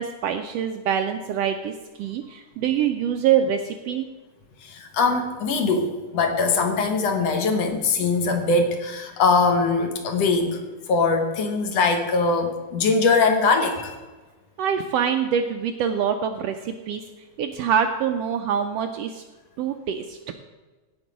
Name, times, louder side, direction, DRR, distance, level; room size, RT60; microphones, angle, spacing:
voice 1, 0.0-1.7 2.0-4.1 14.6-17.0 17.4-19.2 19.6-20.3, right 8 dB, 80° right, 7 dB, 1.5 m, -25 dB
voice 2, 4.6-10.6 10.9-14.0, left 4 dB, 65° left, 5 dB, 2.1 m, -22 dB
16.0 x 5.4 x 5.1 m, 1.2 s
omnidirectional pair, 3.3 m